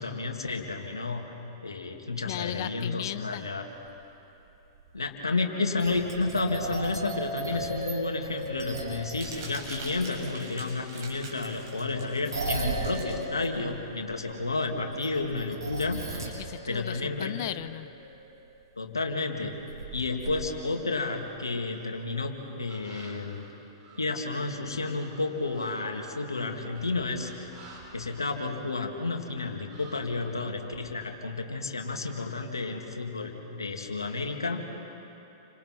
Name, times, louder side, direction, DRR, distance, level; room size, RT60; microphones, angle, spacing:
voice 1, 0.0-1.3 1.6-3.7 4.9-16.3 16.7-17.3 18.8-19.6 19.9-23.4 24.0-27.5 27.9-34.6, left 3 dB, 85° left, 2 dB, 2.5 m, -31 dB
voice 2, 2.2-3.5 7.5-7.6 16.3-17.9, left 13 dB, 50° left, 14 dB, 0.8 m, -36 dB
sound 1, 3.7-3.8 4.7-4.9 5.8-10.3 11.7-18.5 19.7-19.9 20.2-20.5 22.6-22.7, right 2 dB, 80° right, 7.4 m, -36 dB
Crumpling crinkling, 8.2-14.6, right 3 dB, 50° right, 6.8 m, -46 dB
sound 2, 22.7-24.6 25.0-28.9 29.1-30.1, right 2 dB, 35° right, 7.7 m, -52 dB
30.0 x 25.5 x 4.6 m, 2.9 s
figure-of-eight pair, 105°, 2 cm